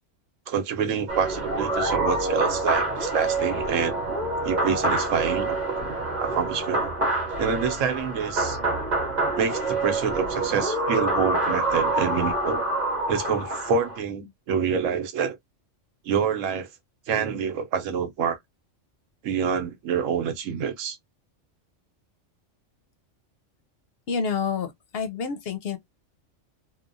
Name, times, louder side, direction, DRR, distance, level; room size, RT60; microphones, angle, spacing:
voice 1, 0.5-4.0 4.4-5.9 6.2-6.8 7.4-8.6 9.4-12.6 13.1-15.4 16.0-16.7 17.1-18.4 19.2-21.0, right 7 dB, 90° right, 1.0 m, -27 dB
sound 1, 1.1-14.0, right 2 dB, 40° right, 0.9 m, -27 dB
voice 2, 24.1-25.8, left 6 dB, 60° left, 0.7 m, -28 dB
2.9 x 2.1 x 2.5 m
omnidirectional pair, 1.3 m